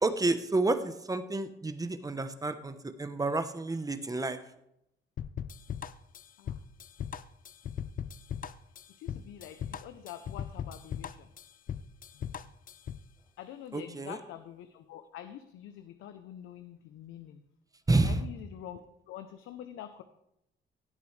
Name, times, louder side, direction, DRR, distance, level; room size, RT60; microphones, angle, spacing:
voice 1, 0.0-4.4 13.7-14.2 17.9-18.2, right 2 dB, 15° right, 10 dB, 0.9 m, -30 dB
sound 1, 5.2-13.1, left 8 dB, 45° left, 0.5 m, -39 dB
voice 2, 9.0-11.3 12.1-12.3 13.4-17.4 18.0-18.8 19.1-20.0, left 10 dB, 90° left, 9 dB, 0.7 m, -46 dB
16.5 x 8.4 x 3.2 m, 0.80 s
cardioid pair, 90°, 20 cm